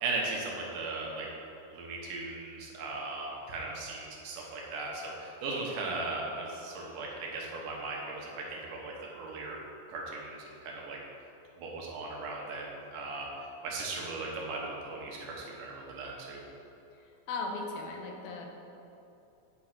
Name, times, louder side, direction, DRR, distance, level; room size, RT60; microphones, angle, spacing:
voice 1, 0.0-1.3 1.7-9.6 9.9-11.0 11.6-13.3 13.6-16.4, right 3 dB, 70° right, -2 dB, 2.4 m, -37 dB
voice 2, 17.3-18.5, left 3 dB, 90° left, 1 dB, 2.7 m, -37 dB
8.7 x 3.7 x 5.8 m, 2.8 s
omnidirectional pair, 4.1 m